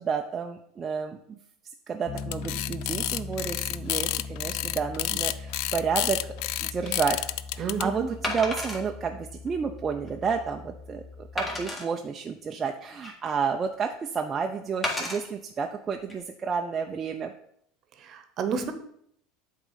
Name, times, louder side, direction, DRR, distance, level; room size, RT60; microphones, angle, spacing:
voice 1, 0.0-1.4 1.9-6.3 6.6-7.2 7.5-11.0 11.3-17.3, right 6 dB, 25° right, 3 dB, 0.5 m, -30 dB
Piano, 2.1-11.7, left 4 dB, 35° left, 1.0 m, -40 dB
sound 1, 2.2-7.8, left 16 dB, 65° left, 0.3 m, -29 dB
Wood, 6.6-6.8 8.2-8.8 9.5-9.6 10.1-10.2 11.4-11.9 12.6-13.4 14.8-15.2 15.9-16.1, left 1 dB, 20° left, 1.9 m, -32 dB
voice 2, 7.6-8.1 18.1-18.7, right 6 dB, 45° right, 9 dB, 1.0 m, -30 dB
8.0 x 3.7 x 5.6 m, 0.71 s
supercardioid pair, 110°, 0 cm